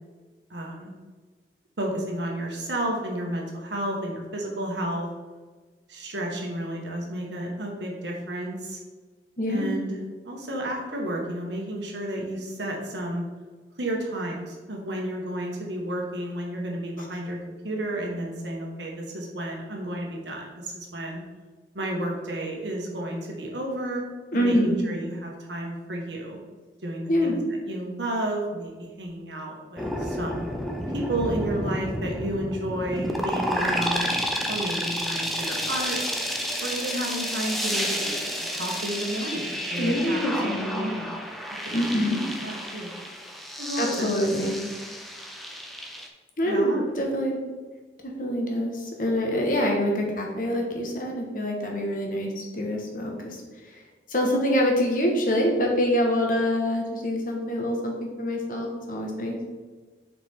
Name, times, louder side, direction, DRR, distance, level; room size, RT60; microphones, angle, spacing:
voice 1, 0.5-0.9 1.8-5.1 5.9-8.8 9.5-10.0 10.2-13.2 13.8-17.4 17.6-21.2 21.7-24.0 24.3-26.4 26.8-27.4 27.7-30.5 30.9-34.1 34.5-36.0 36.6-41.1 41.9-42.9 43.6-44.1 46.4-46.8, right 1 dB, 85° right, 0 dB, 1.6 m, -32 dB
voice 2, 9.4-9.7 24.3-24.9 27.1-27.4 39.8-40.9 41.7-42.2 43.8-44.6 46.4-47.4 48.0-53.8 54.1-59.4, equal, 50° left, 0 dB, 1.4 m, -25 dB
sound 1, 29.8-46.1, equal, ahead, 0.6 m, -31 dB
7.2 x 5.1 x 3.7 m, 1.3 s
head